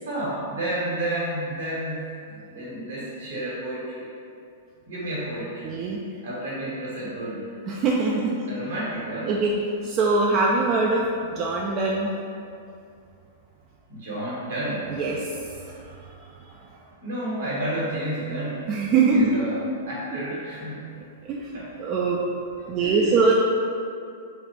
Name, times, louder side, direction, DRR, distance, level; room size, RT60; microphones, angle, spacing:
voice 1, 0.0-2.0 2.3-4.1 4.9-5.7 6.2-7.5 8.5-9.4 13.9-14.9 17.0-18.7 19.1-20.8 21.5-21.7 22.6-23.2, right 1 dB, 70° right, -6 dB, 1.4 m, -31 dB
voice 2, 5.6-6.0 7.7-8.3 9.3-9.5 9.8-12.1 14.9-16.1 18.7-19.3 21.2-21.5 21.8-22.2 22.7-23.3, right 3 dB, 35° right, -3 dB, 0.4 m, -23 dB
4.1 x 2.4 x 3.4 m, 2.5 s
hypercardioid pair, 105°, 0 cm